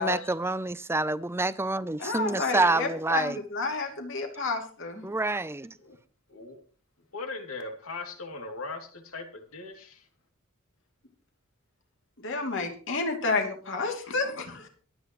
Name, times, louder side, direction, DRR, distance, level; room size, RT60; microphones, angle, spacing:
voice 1, 0.0-3.4 5.0-5.7, right 2 dB, 10° right, 0.5 m, -27 dB
voice 2, 2.0-5.0 12.2-14.7, left 3 dB, 60° left, 2.7 m, -30 dB
voice 3, 7.1-9.2 9.5-10.0, left 3 dB, 75° left, 2.8 m, -39 dB
23.5 x 9.0 x 3.1 m
head